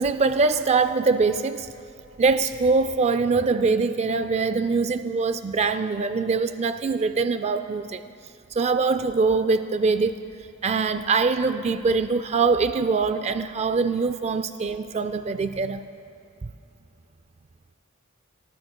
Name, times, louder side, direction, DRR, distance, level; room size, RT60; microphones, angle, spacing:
voice 1, 0.0-1.7 2.2-8.0 8.5-10.2 10.6-15.8, right 4 dB, 30° right, 11 dB, 0.3 m, -23 dB
28.5 x 18.0 x 2.3 m, 2.6 s
head